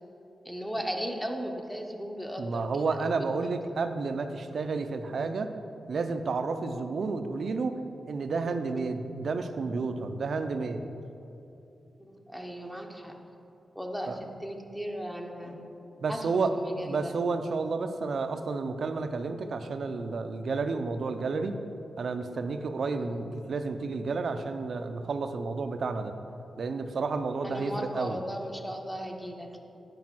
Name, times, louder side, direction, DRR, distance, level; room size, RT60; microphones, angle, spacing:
voice 1, 0.4-2.7 3.0-3.1 3.4-3.5 12.0-13.1 13.8-15.6 16.1-17.1 23.0-23.2 27.4-29.6, equal, 5° left, 2 dB, 0.8 m, -36 dB
voice 2, 2.4-5.5 5.9-7.8 8.1-10.8 14.1-14.2 16.0-16.5 16.8-21.6 22.0-26.1 26.6-28.2, right 4 dB, 60° right, 8 dB, 0.5 m, -31 dB
9.4 x 4.9 x 6.0 m, 2.8 s
wide cardioid pair, 120°, 0 cm